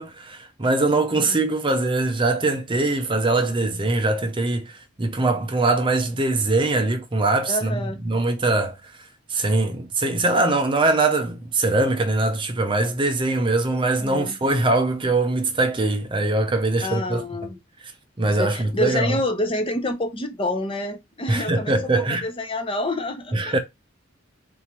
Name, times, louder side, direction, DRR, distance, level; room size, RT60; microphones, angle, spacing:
voice 1, 0.0-8.9 9.3-17.2 18.2-19.2 21.3-22.3 23.3-23.6, right 2 dB, 25° right, 0.6 m, -22 dB
voice 2, 7.5-8.0 14.0-14.4 16.8-17.6 18.4-23.6, left 1 dB, 25° left, 0.7 m, -28 dB
3.9 x 3.7 x 2.9 m
head